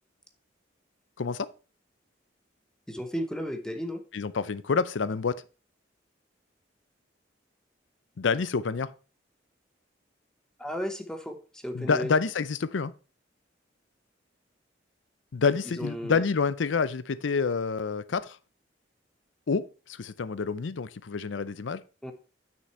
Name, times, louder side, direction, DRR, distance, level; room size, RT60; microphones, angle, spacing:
voice 1, 1.2-1.5 4.1-5.4 8.2-8.9 11.7-12.9 15.3-18.4 19.5-21.8, left 5 dB, 85° left, 0.5 m, -28 dB
voice 2, 2.9-4.0 10.6-12.1 15.7-16.3 22.0-22.1, equal, 5° left, 0.9 m, -34 dB
6.5 x 6.1 x 4.3 m
head